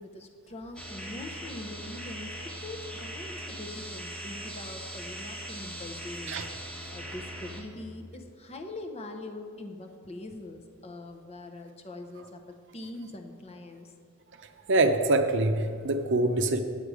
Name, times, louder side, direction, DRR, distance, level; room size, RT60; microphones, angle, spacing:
voice 1, 0.0-6.4 6.9-13.9, left 2 dB, 30° left, 4 dB, 0.7 m, -43 dB
sound 1, 0.8-7.6, equal, 5° left, 1.1 m, -40 dB
voice 2, 14.7-16.6, right 2 dB, 60° right, 7 dB, 0.6 m, -24 dB
8.9 x 8.6 x 4.9 m, 2.2 s
head